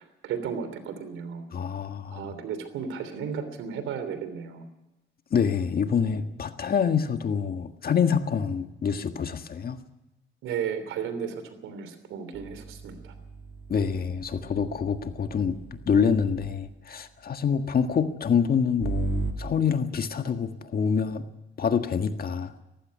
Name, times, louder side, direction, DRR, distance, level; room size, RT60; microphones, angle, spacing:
voice 1, 0.0-1.4 2.0-4.6 10.4-13.1, right 7 dB, 85° right, 10 dB, 3.1 m, -34 dB
voice 2, 1.5-2.2 5.3-9.8 13.7-21.2 21.6-22.5, left 6 dB, 50° left, 8 dB, 1.7 m, -26 dB
sound 1, 12.3-16.7 18.8-19.3, right 5 dB, 65° right, 2.9 m, -37 dB
18.5 x 15.5 x 9.4 m, 1.0 s
cardioid pair, 90°, 20 cm